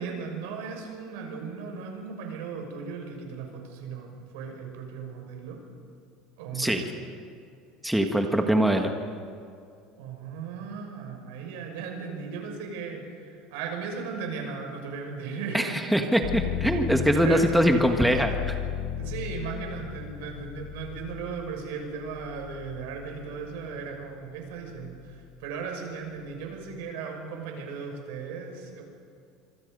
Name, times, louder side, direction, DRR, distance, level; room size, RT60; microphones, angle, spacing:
voice 1, 0.0-5.6 6.4-6.8 10.0-15.9 17.1-17.5 19.0-28.8, right 5 dB, 85° right, 2 dB, 6.3 m, -37 dB
voice 2, 7.8-8.9 15.5-18.6, equal, 5° right, 4 dB, 1.5 m, -23 dB
sound 1, 16.2-24.0 24.5-25.3, left 9 dB, 60° left, 1.1 m, -35 dB
26.0 x 24.5 x 5.4 m, 2.4 s
cardioid pair, 145°, 0 cm